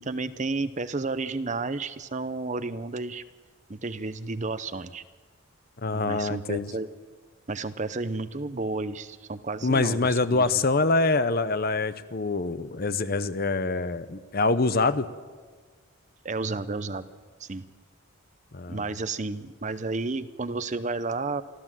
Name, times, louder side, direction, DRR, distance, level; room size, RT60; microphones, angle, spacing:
voice 1, 0.0-3.2 3.7-5.0 5.9-6.9 7.5-10.0 10.3-10.6 16.2-17.1 17.4-17.7 18.7-21.4, right 3 dB, 35° right, 13 dB, 0.7 m, -32 dB
voice 2, 5.8-6.7 9.6-15.1 18.5-18.8, left 3 dB, 45° left, 13 dB, 0.8 m, -25 dB
26.0 x 13.5 x 7.5 m, 1.5 s
head